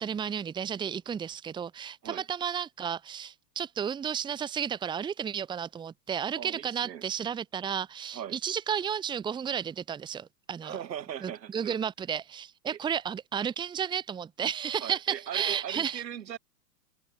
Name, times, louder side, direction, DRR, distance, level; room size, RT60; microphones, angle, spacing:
voice 1, 0.0-10.8 11.2-16.0, right 8 dB, 10° right, 1.2 m, -33 dB
voice 2, 6.4-7.0 8.1-8.4 10.6-11.8 14.8-16.4, right 10 dB, 80° right, 3.0 m, -39 dB
hypercardioid pair, 145°, 49 cm